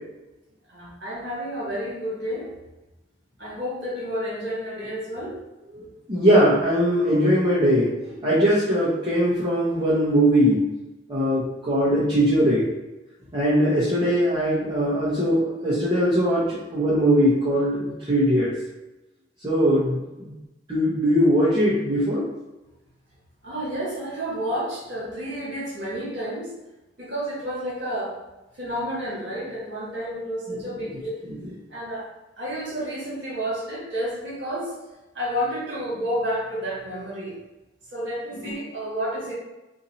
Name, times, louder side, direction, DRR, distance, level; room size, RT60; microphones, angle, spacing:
voice 1, 0.7-2.5 3.4-5.4 23.4-26.5 27.0-28.2 28.6-31.2 31.7-32.1 32.4-34.7 35.1-37.3 37.9-39.3, equal, 70° right, -5 dB, 1.4 m, -30 dB
voice 2, 5.8-7.9 8.2-10.7 11.1-12.7 13.3-18.5 19.4-20.3 20.7-22.2 38.4-38.5, equal, 25° right, -10 dB, 0.9 m, -20 dB
2.8 x 2.7 x 4.0 m, 1.0 s
head